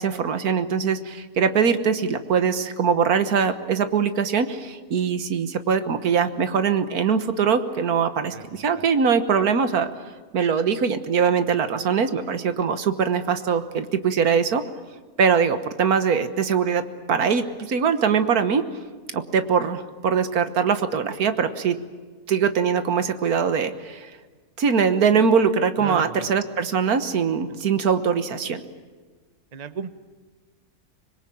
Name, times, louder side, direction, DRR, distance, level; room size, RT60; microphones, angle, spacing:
voice 1, 0.0-9.9 10.3-14.6 15.2-16.8 17.1-18.7 19.1-21.8 22.3-24.1 24.6-28.6, right 6 dB, 75° right, 10 dB, 1.7 m, -22 dB
voice 2, 8.3-8.8 25.8-26.4 27.5-27.6 29.5-29.9, right 6 dB, 30° right, 12 dB, 0.9 m, -35 dB
25.5 x 21.5 x 8.6 m, 1.4 s
omnidirectional pair, 1.6 m